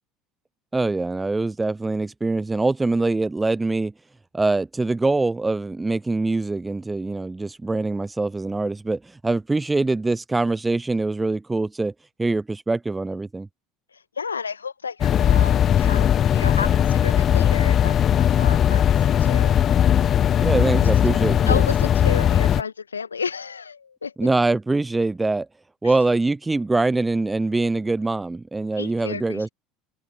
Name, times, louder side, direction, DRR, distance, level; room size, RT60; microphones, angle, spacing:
voice 1, 0.7-3.9 4.3-11.9 12.2-13.5 20.4-21.6 24.2-25.5 25.8-29.5, right 3 dB, 15° right, 0.7 m, -23 dB
voice 2, 13.9-19.6 21.5-24.1 25.8-26.0 28.8-29.5, left 6 dB, 80° left, 2.3 m, -32 dB
sound 1, 15.0-22.6, left 9 dB, 40° left, 0.3 m, -18 dB
figure-of-eight pair, 70°, 0 cm